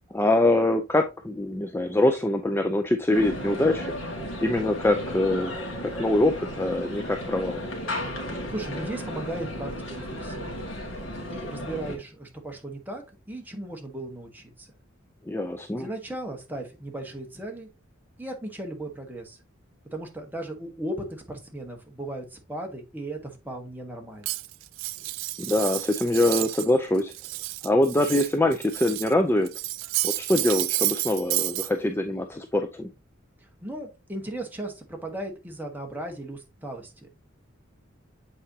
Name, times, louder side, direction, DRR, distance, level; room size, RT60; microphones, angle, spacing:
voice 1, 0.1-3.9 4.4-5.5 6.0-7.6 15.3-15.9 25.4-27.1 27.6-29.5 30.0-32.9, left 1 dB, 10° left, 5 dB, 0.4 m, -24 dB
sound 1, 3.1-12.0, equal, 70° left, 2.1 m, -34 dB
voice 2, 8.5-10.5 11.3-14.7 15.7-17.7 18.2-19.4 19.9-24.3 33.6-37.1, right 1 dB, 10° right, 1 dB, 1.3 m, -36 dB
Cutlery silverware, 24.2-26.7 27.0-29.1 29.5-31.7, right 19 dB, 70° right, 0.3 m, -30 dB
7.8 x 4.4 x 2.8 m, 0.26 s
head